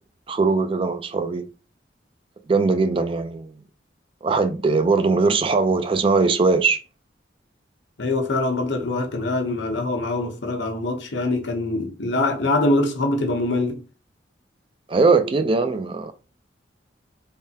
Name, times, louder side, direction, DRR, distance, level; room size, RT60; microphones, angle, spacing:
voice 1, 0.3-1.4 2.5-3.5 4.2-6.8 14.9-16.1, right 4 dB, 30° right, 0.3 m, -20 dB
voice 2, 8.0-13.8, left 2 dB, 75° left, 0.9 m, -23 dB
3.4 x 3.2 x 2.8 m
head